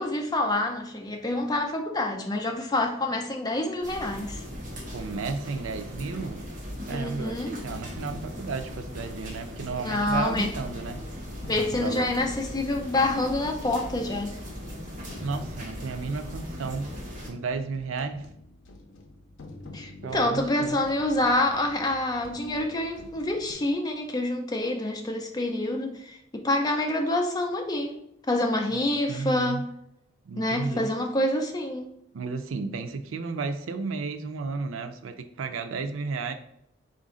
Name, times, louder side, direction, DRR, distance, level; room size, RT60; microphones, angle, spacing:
voice 1, 0.0-4.4 6.9-7.5 9.8-10.5 11.5-14.4 19.7-28.0 28.3-29.7 30.4-31.9, left 1 dB, 20° left, 3 dB, 0.5 m, -27 dB
sound 1, 3.8-17.3, equal, 40° right, 1.0 m, -39 dB
voice 2, 4.9-6.4 6.9-11.0 11.7-12.1 15.2-16.9 17.3-18.3 20.0-20.8 28.7-28.8 29.1-29.6 30.2-30.9 32.1-36.3, right 4 dB, 90° right, 8 dB, 0.4 m, -33 dB
sound 2, 7.7-23.5, left 2 dB, 70° left, 0.6 m, -47 dB
4.0 x 2.5 x 3.7 m, 0.75 s
head